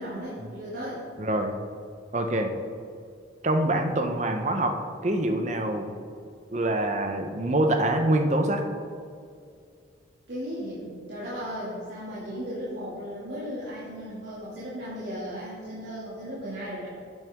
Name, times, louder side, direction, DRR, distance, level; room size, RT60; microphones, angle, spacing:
voice 1, 0.0-1.0 10.3-16.9, equal, 70° right, -10 dB, 2.4 m, -36 dB
voice 2, 1.2-1.5 2.1-2.5 3.4-4.8 5.0-5.9 6.5-8.6, right 1 dB, 40° right, 5 dB, 0.8 m, -25 dB
11.0 x 9.0 x 3.6 m, 2.3 s
head